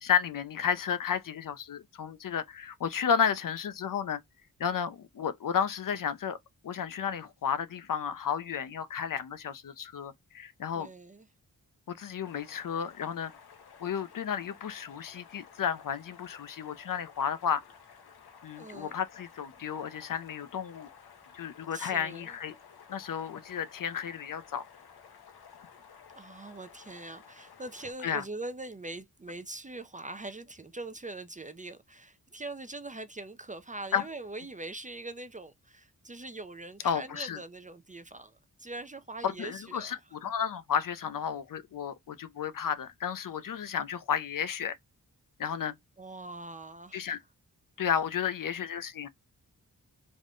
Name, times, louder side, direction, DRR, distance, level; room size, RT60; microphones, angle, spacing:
voice 1, 0.0-4.2 4.6-6.4 6.6-10.9 11.9-13.3 13.8-17.6 18.4-20.9 21.3-22.5 22.9-24.7 28.0-28.2 33.9-34.0 36.8-37.4 39.2-44.8 45.4-45.7 46.9-47.2 47.8-49.1, left 7 dB, 60° left, 0.5 m, -32 dB
voice 2, 10.7-11.3 18.5-19.0 21.7-22.4 26.1-40.0 46.0-47.0, right 2 dB, 20° right, 0.4 m, -42 dB
sound 1, 12.2-27.9, left 7 dB, 85° left, 0.8 m, -54 dB
3.6 x 2.1 x 3.6 m
wide cardioid pair, 75°, 37 cm